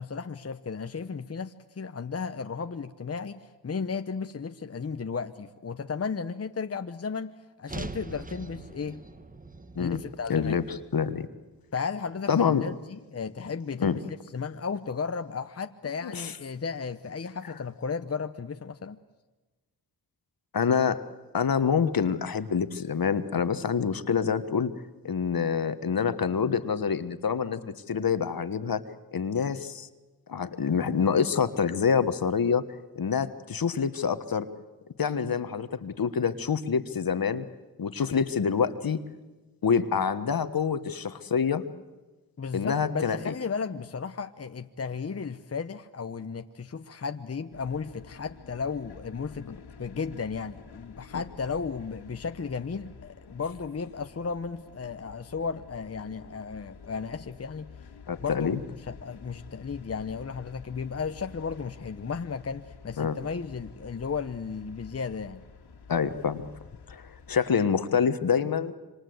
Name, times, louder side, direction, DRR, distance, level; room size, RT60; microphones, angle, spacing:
voice 1, 0.0-7.3 7.6-9.0 9.8-10.6 11.7-14.0 14.3-19.0 42.4-57.7 58.2-58.6 58.9-65.4, left 5 dB, 40° left, 8 dB, 0.9 m, -34 dB
sound 1, 7.7-11.9, right 2 dB, 20° right, 1.3 m, -43 dB
voice 2, 10.3-11.3 12.3-12.6 13.8-14.0 16.0-16.3 20.5-21.0 21.3-24.7 25.0-28.8 29.1-29.9 30.3-32.6 32.9-34.5 35.0-37.4 37.8-39.0 39.6-41.6 42.5-43.3 51.1-51.2 58.1-58.6 63.0-63.2 65.9-66.4 66.9-68.7, left 6 dB, 60° left, 11 dB, 1.4 m, -26 dB
sound 2, 47.5-67.4, left 5 dB, 80° left, 2.4 m, -49 dB
26.5 x 25.0 x 8.0 m, 1.2 s
cardioid pair, 60°, 39 cm